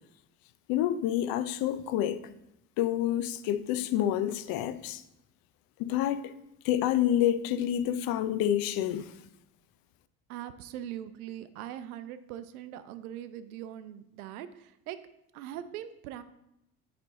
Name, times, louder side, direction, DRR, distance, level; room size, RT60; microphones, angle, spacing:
voice 1, 0.7-2.2 2.8-5.0 5.8-6.2 6.6-9.1, left 11 dB, 55° left, 0.6 m, -28 dB
voice 2, 10.3-15.0 15.3-16.2, right 11 dB, 80° right, 0.6 m, -41 dB
8.9 x 3.4 x 4.0 m
hypercardioid pair, 75°, 43 cm